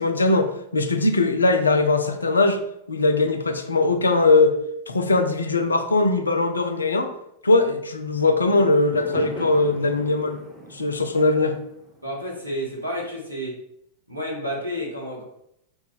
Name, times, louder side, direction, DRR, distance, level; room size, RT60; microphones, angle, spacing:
voice 1, 0.0-2.6 2.9-4.5 4.9-7.1 7.4-10.4 10.7-11.6, left 3 dB, 75° left, 7 dB, 0.3 m, -20 dB
Fireworks, 8.5-12.9, right 1 dB, ahead, 0.7 m, -39 dB
voice 2, 12.0-13.6 14.1-15.2, equal, 85° right, -3 dB, 0.8 m, -30 dB
2.4 x 2.0 x 3.8 m, 0.76 s
figure-of-eight pair, 90°, 0 cm